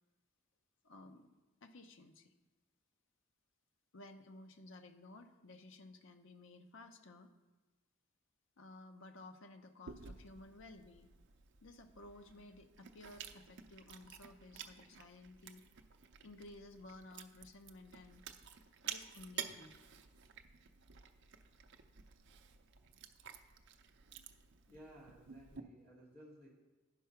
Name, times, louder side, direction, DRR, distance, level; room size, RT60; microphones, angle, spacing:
voice 1, 0.8-1.3 1.6-2.3 3.9-7.3 8.6-11.1 11.6-15.6 16.2-18.2 18.8-19.9 23.2-23.4 24.4-24.5, left 2 dB, 65° left, 7 dB, 0.7 m, -55 dB
Chewing mastication, 9.9-25.6, right 7 dB, 60° right, 0.5 m, -52 dB
voice 2, 24.7-26.5, equal, 15° left, -7 dB, 1.8 m, -57 dB
11.0 x 4.7 x 5.7 m, 1.2 s
head